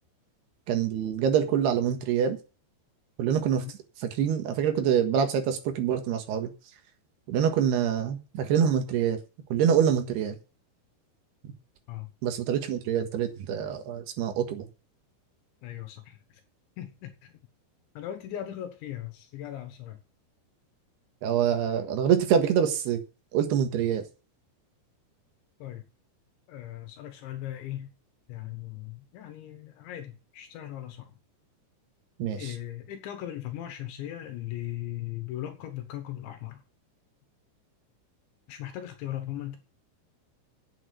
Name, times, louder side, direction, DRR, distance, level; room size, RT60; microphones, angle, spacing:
voice 1, 0.7-2.4 3.2-3.6 4.0-6.5 7.3-9.2 9.5-10.4 12.2-14.7 21.2-23.0 23.3-24.0 32.2-32.5, right 8 dB, 70° right, 7 dB, 3.3 m, -25 dB
voice 2, 15.6-16.4 16.8-17.3 18.0-20.0 25.6-25.8 26.5-27.9 28.3-31.2 32.4-36.6 38.5-39.6, left 12 dB, 80° left, 8 dB, 3.6 m, -38 dB
8.5 x 8.4 x 8.3 m, 0.33 s
omnidirectional pair, 5.3 m